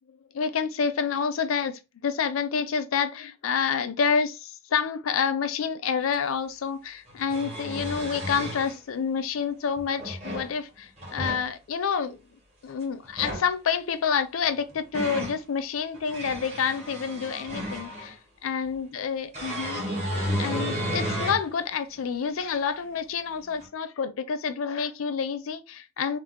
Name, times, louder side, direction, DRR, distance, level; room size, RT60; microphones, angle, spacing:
voice 1, 0.1-18.2 18.4-19.8 20.4-26.2, left 6 dB, 80° left, 0.4 m, -28 dB
sound 1, 6.1-6.2 7.1-8.7 9.8-10.5 11.0-11.5 13.0-13.5 14.5-15.4 15.9-18.1 19.3-21.5 22.0-22.1 23.6-23.7, equal, 35° right, 1.3 m, -32 dB
3.2 x 2.0 x 3.1 m
head